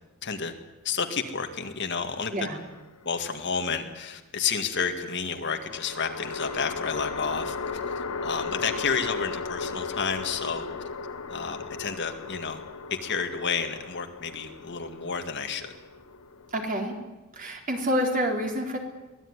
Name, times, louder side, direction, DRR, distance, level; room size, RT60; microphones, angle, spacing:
voice 1, 0.2-0.5 0.8-2.3 3.0-10.7 11.3-12.6 13.0-15.7, left 5 dB, 55° left, 6 dB, 2.1 m, -31 dB
sound 1, 2.5-3.4 5.6-17.0, left 4 dB, 75° left, 1.4 m, -36 dB
voice 2, 16.5-16.9 17.4-18.8, equal, 40° right, 2 dB, 4.0 m, -27 dB
23.5 x 16.5 x 9.8 m, 1.1 s
head